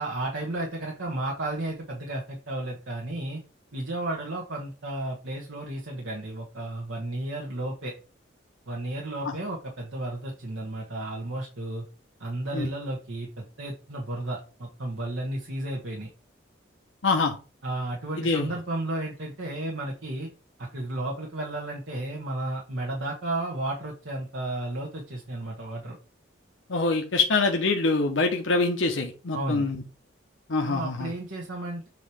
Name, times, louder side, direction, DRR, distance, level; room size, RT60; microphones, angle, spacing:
voice 1, 0.0-3.4 3.7-7.9 8.7-11.8 12.2-16.1 17.6-20.3 20.6-26.0 29.3-29.7 30.6-31.9, right 1 dB, 80° right, -1 dB, 1.5 m, -33 dB
voice 2, 17.0-17.3 18.2-18.5 26.7-29.8 30.5-31.1, left 3 dB, 80° left, 2 dB, 1.0 m, -25 dB
7.7 x 3.1 x 5.0 m, 0.35 s
head